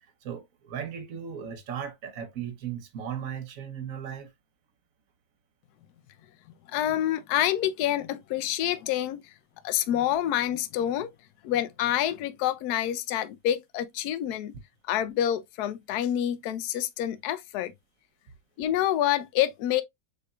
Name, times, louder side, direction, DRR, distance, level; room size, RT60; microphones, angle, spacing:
voice 1, 0.0-4.3, right 8 dB, 55° right, 1.1 m, -37 dB
voice 2, 6.7-9.2 9.6-11.1 11.4-14.5 14.9-17.7 18.6-19.8, left 11 dB, 70° left, 1.0 m, -27 dB
6.7 x 3.4 x 2.3 m
omnidirectional pair, 2.0 m